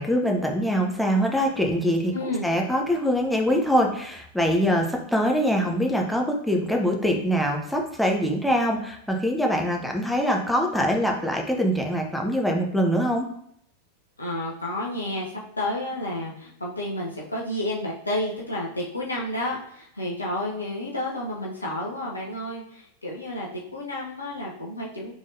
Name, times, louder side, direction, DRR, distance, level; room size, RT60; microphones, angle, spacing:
voice 1, 0.0-2.1 2.4-13.3, equal, ahead, 0 dB, 0.6 m, -23 dB
voice 2, 2.1-2.5 14.2-25.1, left 1 dB, 80° left, -4 dB, 0.7 m, -31 dB
3.6 x 3.3 x 2.6 m, 0.68 s
figure-of-eight pair, 90°, 0 cm